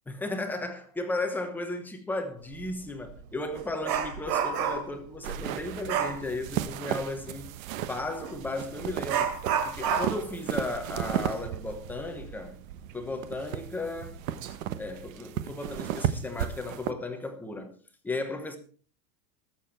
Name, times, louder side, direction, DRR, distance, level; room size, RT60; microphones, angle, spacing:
voice 1, 0.1-9.3 9.6-12.5 12.9-14.2 14.8-17.8 18.0-18.6, left 2 dB, 5° left, 0.9 m, -35 dB
Dog, 2.5-2.7 3.1-5.0 5.9-6.2 8.2-8.4 9.1-12.4 12.7-12.8 13.3-13.4 14.1-14.5 14.8-15.1, right 7 dB, 80° right, 3.3 m, -30 dB
sound 1, 5.2-16.9, right 11 dB, 55° right, 1.2 m, -35 dB
20.5 x 7.1 x 4.4 m
supercardioid pair, 180°, 49 cm